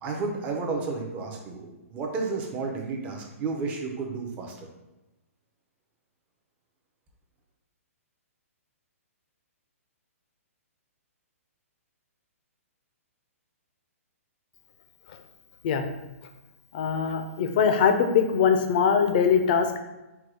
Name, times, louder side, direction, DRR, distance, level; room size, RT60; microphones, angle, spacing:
voice 1, 0.0-4.7, right 4 dB, 15° right, 1 dB, 0.6 m, -32 dB
voice 2, 16.7-19.8, left 6 dB, 40° left, 6 dB, 0.5 m, -22 dB
4.6 x 2.2 x 4.7 m, 1.0 s
hypercardioid pair, 160°, 8 cm